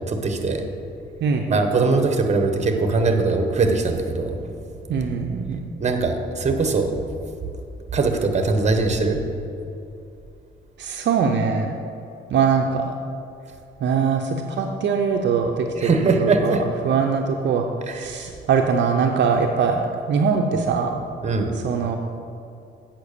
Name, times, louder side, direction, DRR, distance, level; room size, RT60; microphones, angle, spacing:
voice 1, 0.1-0.6 1.5-4.5 5.8-6.9 7.9-9.2 15.8-16.6 17.9-18.1 21.2-21.6, right 3 dB, 35° right, 5 dB, 1.2 m, -21 dB
voice 2, 1.2-1.6 4.9-5.6 10.8-11.8 12.3-12.9 13.8-16.6 16.8-21.0 21.5-22.0, right 6 dB, 65° right, 3 dB, 0.7 m, -22 dB
8.3 x 5.9 x 6.7 m, 2.7 s
cardioid pair, 90°, 20 cm